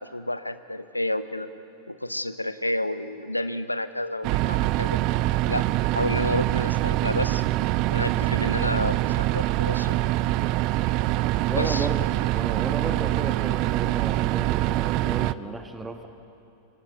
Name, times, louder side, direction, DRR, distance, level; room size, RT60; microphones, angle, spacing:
voice 1, 0.0-1.5 1.9-5.0 5.5-5.7 5.9-7.4 7.9-10.0 11.5-11.9, left 1 dB, 85° left, 12 dB, 0.9 m, -30 dB
sound 1, 4.2-15.3, right 16 dB, 40° right, 0.5 m, -24 dB
voice 2, 11.5-12.0 12.3-16.1, right 3 dB, 10° right, 6 dB, 1.4 m, -34 dB
28.0 x 24.5 x 6.7 m, 2.8 s
figure-of-eight pair, 90°, 0 cm